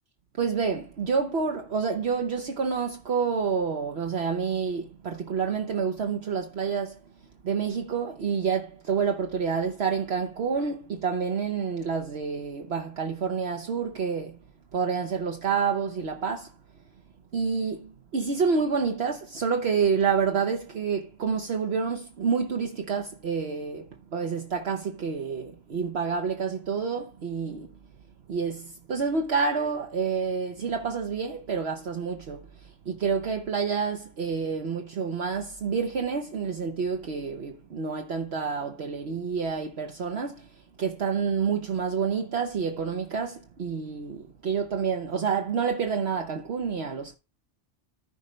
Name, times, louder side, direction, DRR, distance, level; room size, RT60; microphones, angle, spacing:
voice 1, 0.4-7.0 7.4-14.4 14.7-16.5 17.3-27.7 28.3-40.5 40.8-47.2, right 5 dB, 60° right, 1.2 m, -28 dB
14.5 x 5.1 x 3.2 m
omnidirectional pair, 1.2 m